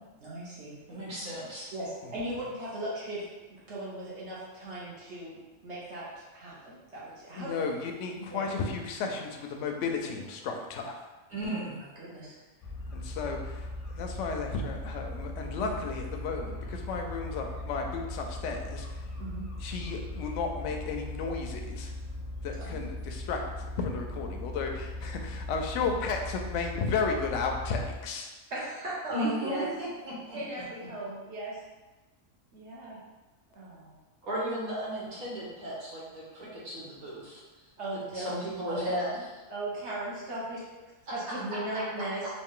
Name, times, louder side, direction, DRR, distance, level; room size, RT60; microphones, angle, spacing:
voice 1, 0.2-0.7 1.7-7.7 8.2-8.5 12.0-12.4 15.6-15.7 19.2-19.4 22.6-22.8 25.8-25.9 28.5-29.7 30.3-31.6 32.5-33.0 33.5-34.0 37.8-38.4 38.7-39.0 39.5-40.6 41.1-42.3, right 1 dB, 55° right, -7 dB, 1.5 m, -38 dB
voice 2, 0.9-1.7 11.3-11.7 29.1-30.6 34.2-37.4 38.1-39.4 41.3-41.4, right 1 dB, 85° right, -7 dB, 1.8 m, -35 dB
voice 3, 7.3-11.0 12.9-13.7 14.0-19.0 19.6-21.9 22.4-28.3, left 4 dB, 70° left, 3 dB, 0.8 m, -33 dB
sound 1, 12.6-27.9, left 1 dB, 45° left, 0.4 m, -39 dB
3.9 x 2.6 x 3.7 m, 1.2 s
omnidirectional pair, 1.5 m